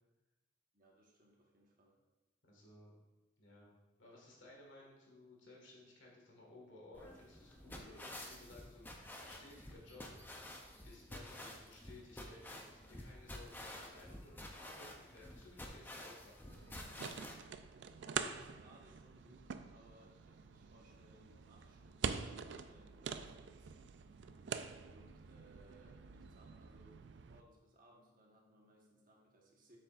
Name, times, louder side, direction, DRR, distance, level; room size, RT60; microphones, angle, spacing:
voice 1, 0.7-2.0 11.5-11.7 18.1-23.8 24.8-29.8, right 1 dB, 45° right, -2 dB, 1.3 m, -65 dB
voice 2, 2.5-2.9 3.4-3.7 4.0-10.0 10.8-16.6, left 2 dB, 70° left, -3 dB, 1.8 m, -58 dB
sound 1, 6.9-17.3, left 1 dB, 10° left, 0.5 m, -51 dB
sound 2, 16.5-27.4, right 6 dB, 60° right, 0.3 m, -46 dB
7.5 x 6.8 x 2.5 m, 1.1 s
head